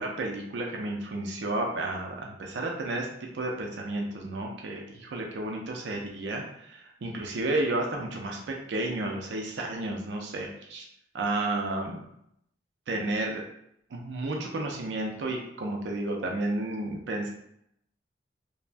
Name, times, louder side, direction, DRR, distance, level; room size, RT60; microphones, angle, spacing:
voice 1, 0.0-3.1 3.3-10.9 11.1-12.0 12.9-13.4 13.9-17.3, right 2 dB, 80° right, 1 dB, 0.4 m, -32 dB
3.2 x 2.0 x 2.5 m, 0.75 s
head